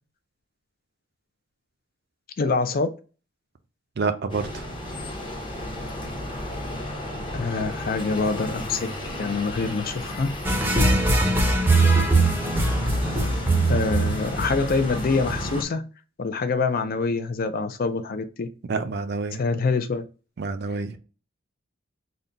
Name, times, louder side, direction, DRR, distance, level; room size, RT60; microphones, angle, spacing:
voice 1, 2.4-2.9 7.3-8.9 9.2-10.3 13.7-15.8 16.2-18.5 19.3-20.1, left 4 dB, 50° left, 0.4 m, -25 dB
voice 2, 4.0-4.7 11.1-11.2 18.7-19.4 20.4-21.0, right 4 dB, 55° right, 0.5 m, -28 dB
sound 1, 4.3-15.6, left 1 dB, 25° left, 0.8 m, -33 dB
sound 2, 10.4-15.5, right 2 dB, 10° right, 0.6 m, -21 dB
3.9 x 2.2 x 3.9 m
head